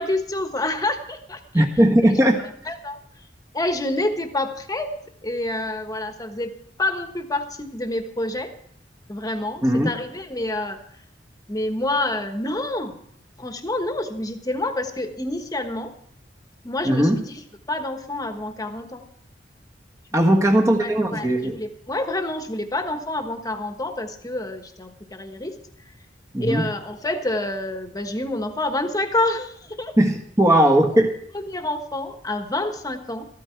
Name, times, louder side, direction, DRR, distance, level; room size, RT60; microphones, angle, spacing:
voice 1, 0.0-1.6 2.7-3.0 3.5-4.9 5.2-8.5 9.1-10.8 11.5-13.0 13.4-15.9 16.6-17.3 17.7-19.0 20.1-20.3 20.8-25.6 26.4-30.0 31.3-33.3, left 2 dB, 20° left, 7 dB, 1.3 m, -28 dB
voice 2, 1.5-2.4 9.6-9.9 16.8-17.2 20.1-21.6 26.3-26.7 30.0-31.1, right 1 dB, 15° right, 2 dB, 1.4 m, -18 dB
14.0 x 13.0 x 4.5 m, 0.66 s
head